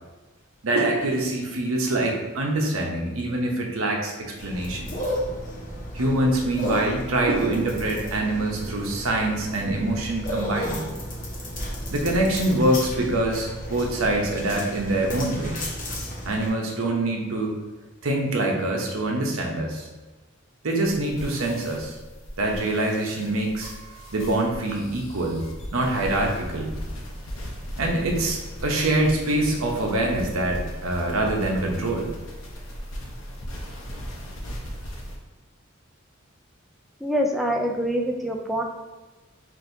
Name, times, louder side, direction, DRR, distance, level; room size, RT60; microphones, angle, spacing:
voice 1, 0.6-4.9 5.9-10.9 11.9-15.6 16.2-17.6 18.0-19.8 20.6-22.0 22.4-23.7 24.1-25.4 25.7-26.8 27.8-32.1, right 1 dB, 85° right, 0 dB, 0.8 m, -25 dB
sound 1, 4.4-16.5, equal, 40° left, 1.0 m, -33 dB
sound 2, 20.8-35.2, equal, 70° left, 0.9 m, -37 dB
voice 2, 37.0-38.6, equal, ahead, 0 dB, 0.3 m, -25 dB
6.1 x 2.7 x 2.7 m, 1.2 s
head